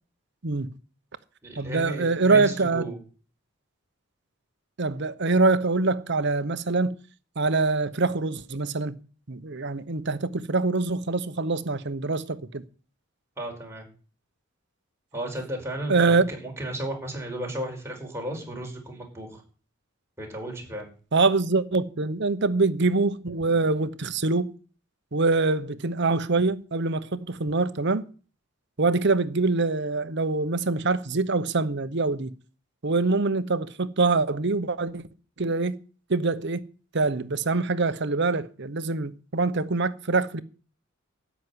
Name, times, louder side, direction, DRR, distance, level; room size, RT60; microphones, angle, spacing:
voice 1, 0.4-0.8 1.6-2.9 4.8-7.0 7.4-9.0 9.3-12.6 15.9-16.3 21.1-24.5 25.1-28.1 28.8-32.3 32.8-35.0 35.4-35.8 36.1-36.6 36.9-40.4, right 3 dB, 55° right, 1.0 m, -24 dB
voice 2, 1.4-2.9 13.4-13.9 15.1-19.4 20.2-20.9, right 1 dB, 15° right, 4.8 m, -34 dB
13.0 x 6.1 x 9.7 m
head